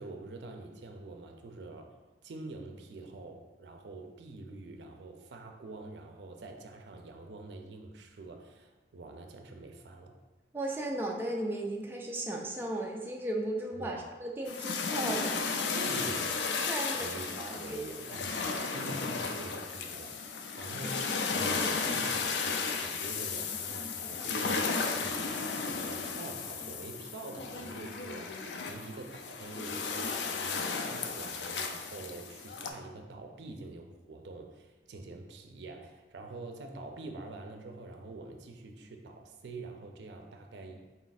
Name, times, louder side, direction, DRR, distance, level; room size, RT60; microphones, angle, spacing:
voice 1, 0.0-2.0 2.2-10.1 13.8-14.1 15.7-16.4 16.9-28.3 28.6-30.6 30.9-40.8, right 2 dB, 75° right, 4 dB, 0.5 m, -45 dB
voice 2, 10.5-15.4 16.7-17.0 17.4-18.6, right 1 dB, 10° right, 0 dB, 0.3 m, -36 dB
sound 1, 14.5-32.7, left 4 dB, 70° left, 0.4 m, -34 dB
4.1 x 2.4 x 4.0 m, 1.2 s
head